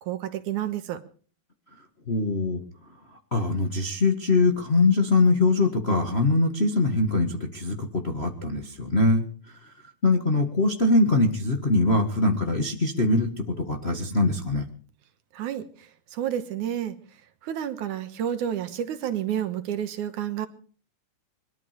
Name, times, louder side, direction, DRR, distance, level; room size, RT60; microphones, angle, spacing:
voice 1, 0.0-1.0 15.3-17.0 17.4-20.5, right 10 dB, 75° right, 10 dB, 2.6 m, -30 dB
voice 2, 2.1-2.6 3.3-9.3 10.0-14.6, left 2 dB, 30° left, 3 dB, 1.3 m, -22 dB
22.5 x 12.5 x 5.1 m, 0.43 s
omnidirectional pair, 3.7 m